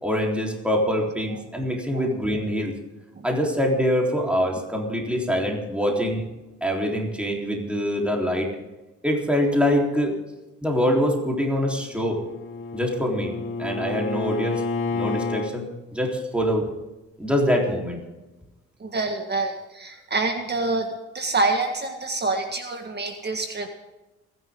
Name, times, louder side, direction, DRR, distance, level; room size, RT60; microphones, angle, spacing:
voice 1, 0.0-2.8 3.2-6.3 6.6-8.5 9.0-10.2 10.6-12.2 12.7-13.3 13.6-14.6 14.9-16.7 17.2-18.0, equal, 5° right, 0 dB, 3.8 m, -24 dB
Bowed string instrument, 11.8-15.5, left 4 dB, 40° left, 2.5 m, -30 dB
voice 2, 18.8-23.7, right 3 dB, 35° right, 5 dB, 1.8 m, -27 dB
28.0 x 11.0 x 3.8 m, 1.1 s
cardioid pair, 90°, 30 cm